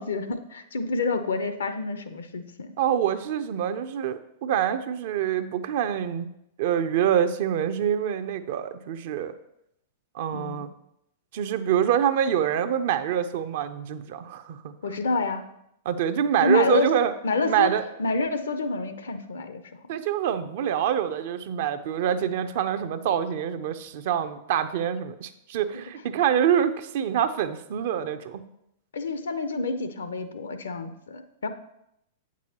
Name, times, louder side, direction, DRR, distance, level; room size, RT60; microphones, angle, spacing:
voice 1, 0.0-2.7 10.3-10.7 14.8-15.5 16.4-16.9 17.2-17.7 18.0-19.6 28.9-31.5, left 3 dB, 75° left, 10 dB, 0.6 m, -28 dB
voice 2, 2.8-6.3 6.6-9.3 10.1-10.7 11.3-15.0 15.9-17.1 17.5-17.8 19.9-28.4, right 9 dB, 55° right, 10 dB, 0.5 m, -26 dB
8.4 x 6.1 x 2.8 m, 0.79 s
figure-of-eight pair, 100°, 0 cm